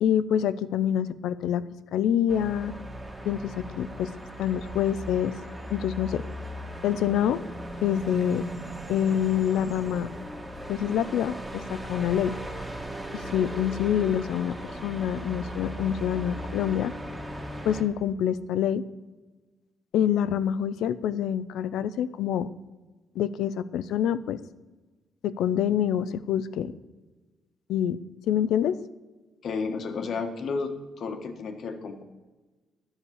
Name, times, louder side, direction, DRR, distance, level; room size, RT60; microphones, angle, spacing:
voice 1, 0.0-1.6 1.9-2.7 3.2-4.1 4.4-5.3 5.7-6.2 6.8-7.4 7.8-8.4 8.9-10.1 10.7-12.4 13.1-14.6 14.8-16.9 17.7-18.8 19.9-22.5 23.2-24.4 25.2-26.7 27.7-28.0 28.3-28.8, left 9 dB, 90° left, 15 dB, 0.5 m, -26 dB
sound 1, 2.3-17.8, equal, 10° right, 1.8 m, -38 dB
voice 2, 29.4-32.0, left 4 dB, 60° left, 6 dB, 1.3 m, -32 dB
11.0 x 6.5 x 7.1 m, 1.2 s
cardioid pair, 120°, 0 cm